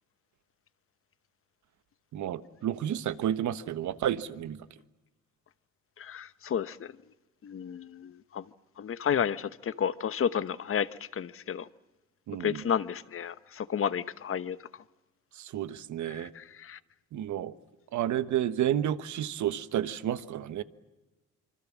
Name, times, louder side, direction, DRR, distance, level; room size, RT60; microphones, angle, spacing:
voice 1, 2.1-4.6 12.3-12.6 15.4-16.3 17.1-17.5 17.9-20.6, right 11 dB, 70° right, 1.2 m, -31 dB
voice 2, 6.0-6.9 7.4-8.4 8.8-11.7 12.4-14.6 16.1-16.8, left 8 dB, 45° left, 0.9 m, -32 dB
26.0 x 24.5 x 7.4 m
cardioid pair, 90°, 30 cm